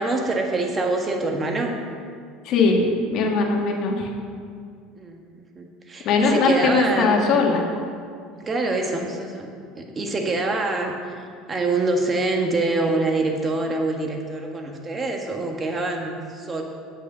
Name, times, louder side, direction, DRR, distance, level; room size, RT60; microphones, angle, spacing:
voice 1, 0.0-1.7 5.0-7.2 8.4-16.6, right 2 dB, 25° right, 2 dB, 1.6 m, -25 dB
voice 2, 2.4-4.1 6.1-7.6, left 4 dB, 55° left, 0 dB, 1.9 m, -20 dB
8.4 x 7.5 x 6.8 m, 2.2 s
supercardioid pair, 110°, 0 cm